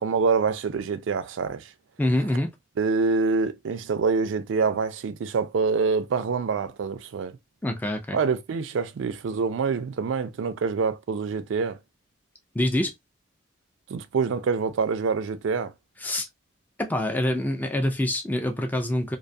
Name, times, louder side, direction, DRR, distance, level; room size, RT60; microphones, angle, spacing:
voice 1, 0.0-1.7 2.8-7.3 8.1-11.8 13.9-15.7, right 5 dB, 75° right, 0.4 m, -26 dB
voice 2, 2.0-2.5 7.6-8.2 12.5-12.9 16.0-16.3 16.8-19.2, left 1 dB, 10° left, 0.3 m, -25 dB
2.5 x 2.3 x 2.5 m
head